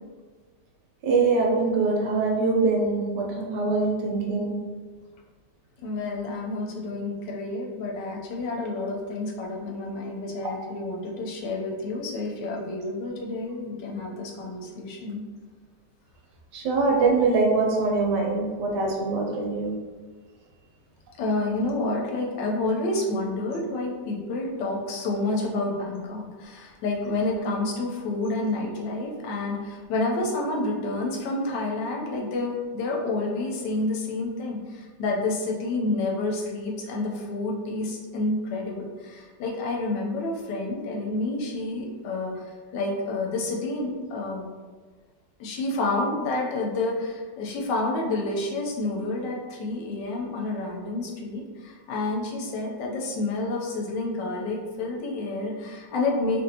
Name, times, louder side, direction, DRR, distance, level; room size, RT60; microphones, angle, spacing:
voice 1, 1.0-4.5 16.5-19.7, right 3 dB, 80° right, -1 dB, 1.2 m, -23 dB
voice 2, 5.8-15.2 21.2-42.4 42.7-44.5 45.4-56.4, left 2 dB, 90° left, -1 dB, 1.3 m, -29 dB
3.0 x 2.5 x 2.7 m, 1.5 s
omnidirectional pair, 1.9 m